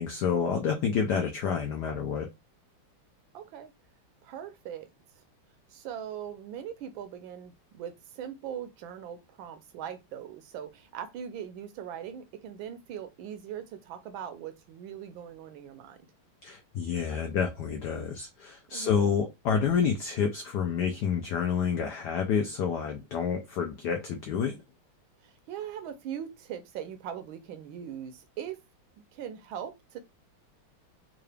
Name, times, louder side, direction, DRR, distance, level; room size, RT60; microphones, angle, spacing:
voice 1, 0.0-2.3 16.4-24.6, left 6 dB, 85° left, 0.9 m, -29 dB
voice 2, 3.3-3.7 4.2-4.9 5.2-5.3 5.7-16.0 18.7-19.3 25.2-28.6 29.1-30.0, right 9 dB, 75° right, 1.2 m, -40 dB
3.8 x 2.4 x 3.2 m
omnidirectional pair, 2.4 m